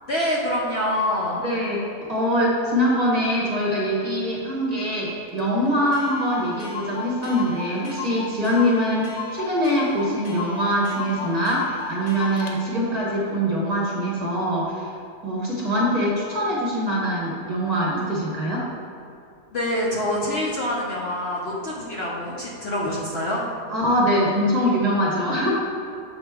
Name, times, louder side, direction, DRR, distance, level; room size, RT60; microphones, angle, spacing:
voice 1, 0.1-1.4 19.5-23.4, left 1 dB, 55° left, -4 dB, 0.8 m, -26 dB
voice 2, 1.4-14.9 15.2-18.7 23.7-25.5, equal, 30° right, -5 dB, 0.9 m, -23 dB
Clock, 5.4-5.5 5.7-5.8 5.9-12.6, left 4 dB, 75° left, 1.2 m, -35 dB
7.1 x 4.4 x 3.5 m, 2.5 s
omnidirectional pair, 1.5 m